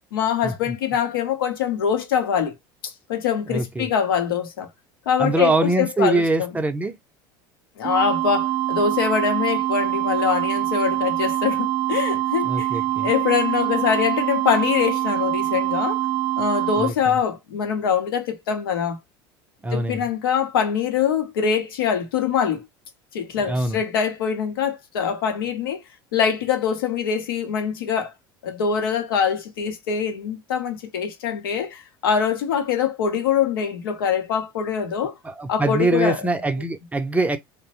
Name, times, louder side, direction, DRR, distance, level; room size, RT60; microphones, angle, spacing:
voice 1, 0.1-2.5 2.8-4.7 5.1-6.5 7.8-16.0 16.4-19.0 19.7-22.7 23.1-25.8 26.1-28.1 28.4-35.1 35.5-36.2, left 7 dB, 85° left, 0.7 m, -24 dB
voice 2, 3.5-3.9 5.2-6.9 12.4-13.1 16.8-17.2 19.6-20.1 23.3-23.8 35.2-37.4, right 2 dB, 10° right, 0.5 m, -23 dB
sound 1, 7.8-16.9, right 14 dB, 65° right, 0.5 m, -24 dB
3.0 x 2.0 x 2.8 m
hypercardioid pair, 80°, 12 cm